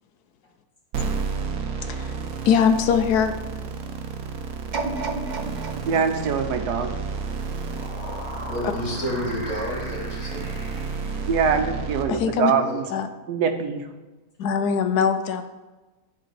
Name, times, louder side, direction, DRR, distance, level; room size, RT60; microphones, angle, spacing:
sound 1, 0.9-12.0, right 5 dB, 65° right, 1.2 m, -31 dB
voice 1, 2.5-3.4 12.1-12.5 12.9-13.1 14.4-15.4, left 7 dB, 75° left, 9 dB, 1.1 m, -21 dB
sound 2, 4.7-7.8 8.3-8.4, right 3 dB, 50° right, 0.5 m, -33 dB
voice 2, 5.9-6.9 11.3-12.9 13.3-13.8, right 6 dB, 90° right, 7 dB, 1.3 m, -23 dB
sound 3, 7.5-11.9, equal, 25° left, 1.9 m, -40 dB
voice 3, 8.5-10.4 12.5-12.8, equal, 50° left, -2 dB, 2.2 m, -30 dB
11.0 x 3.9 x 4.2 m, 1.2 s
omnidirectional pair, 1.7 m